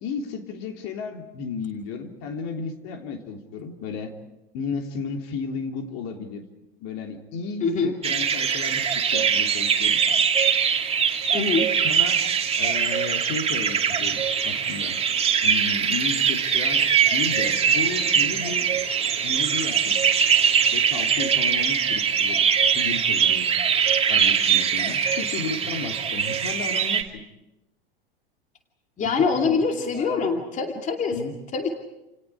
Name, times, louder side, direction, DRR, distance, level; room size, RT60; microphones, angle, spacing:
voice 1, 0.0-4.1 4.5-6.4 6.8-8.8 9.1-10.0 11.8-12.2 12.6-15.0 15.4-16.8 17.1-18.7 19.2-20.0 20.7-23.5 24.1-27.2 29.2-30.3 31.1-31.3, left 5 dB, 45° left, 4 dB, 3.5 m, -33 dB
voice 2, 7.6-8.0 11.3-11.7 29.0-31.2 31.5-31.7, left 4 dB, 25° left, 3 dB, 2.6 m, -24 dB
sound 1, 8.0-27.0, right 7 dB, 20° right, 2.7 m, -22 dB
30.0 x 29.0 x 4.8 m, 0.93 s
figure-of-eight pair, 85°, 31 cm